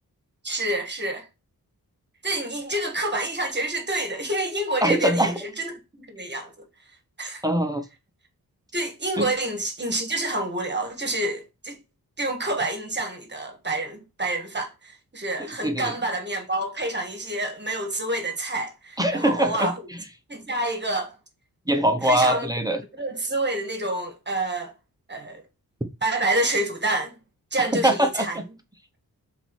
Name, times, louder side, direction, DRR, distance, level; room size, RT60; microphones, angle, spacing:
voice 1, 0.4-1.3 2.2-6.5 7.2-7.4 8.7-11.8 12.2-19.8 20.3-21.1 22.0-22.5 23.0-24.7 25.1-25.4 26.0-27.2 27.5-28.4, right 2 dB, 30° right, 1.5 m, -28 dB
voice 2, 4.8-5.3 7.4-7.9 9.2-9.3 15.4-15.9 19.0-19.7 21.7-22.8 27.6-28.4, right 1 dB, 10° right, 0.7 m, -22 dB
5.9 x 4.1 x 4.6 m
wide cardioid pair, 175°, 36 cm